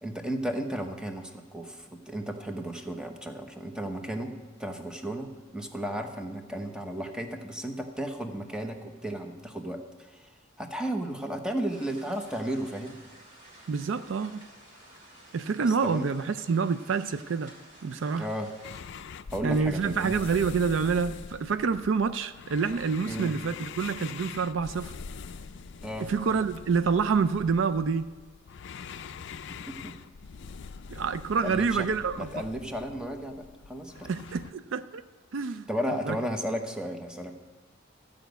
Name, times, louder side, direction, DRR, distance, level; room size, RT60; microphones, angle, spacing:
voice 1, 0.0-4.3 4.6-10.3 10.6-13.0 15.6-16.0 18.2-18.5 19.3-20.2 23.1-23.4 25.8-26.1 29.5-29.9 31.4-31.9 32.2-34.1 35.7-37.3, right 1 dB, 5° right, 4 dB, 0.9 m, -34 dB
sound 1, 11.7-18.8, right 1 dB, 40° right, 3.0 m, -53 dB
voice 2, 13.7-14.5 15.3-17.5 17.8-18.3 19.4-24.9 26.1-28.1 30.9-32.4 34.0-35.0 35.3-35.7 36.1-36.2, right 5 dB, 65° right, 12 dB, 0.4 m, -27 dB
sound 2, 18.6-34.5, left 6 dB, 60° left, 0.4 m, -44 dB
14.0 x 5.2 x 8.0 m, 1.3 s
head